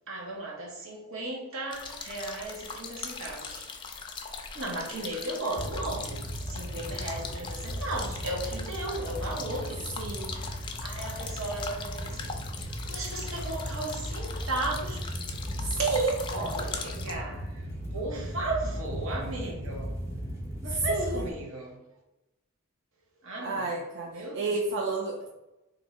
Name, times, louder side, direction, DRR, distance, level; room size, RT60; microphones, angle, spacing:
voice 1, 0.1-3.7 4.5-16.0 16.3-20.0 20.6-21.8 23.2-23.7 24.0-24.4, right 2 dB, 80° right, 0.9 m, -36 dB
sound 1, 1.7-17.1, left 5 dB, 25° left, 0.3 m, -40 dB
sound 2, 5.6-21.3, equal, 15° right, 0.7 m, -36 dB
voice 2, 10.0-10.4 15.6-16.2 20.9-21.2 23.4-25.3, right 3 dB, 60° right, 0.4 m, -30 dB
2.7 x 2.7 x 4.2 m
head